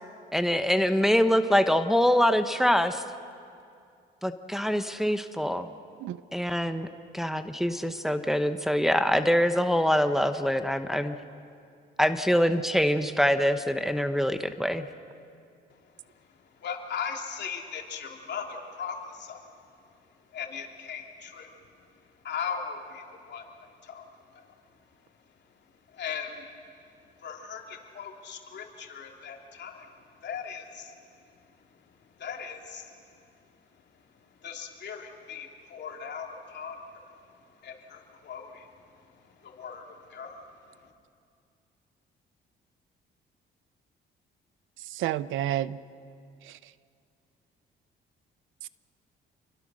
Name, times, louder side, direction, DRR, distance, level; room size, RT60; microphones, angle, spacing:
voice 1, 0.3-3.0 4.2-5.7 6.3-6.9 7.1-11.1 12.0-14.9, equal, ahead, 8 dB, 1.1 m, -24 dB
voice 2, 15.7-19.7 20.0-24.6 24.9-25.0 25.6-33.3 33.7-40.9, left 6 dB, 60° left, 2 dB, 3.1 m, -40 dB
voice 3, 44.9-45.8 46.5-46.6 48.6-48.7, right 13 dB, 90° right, 17 dB, 0.6 m, -30 dB
28.0 x 23.0 x 6.3 m, 2.4 s
cardioid pair, 90°, 20 cm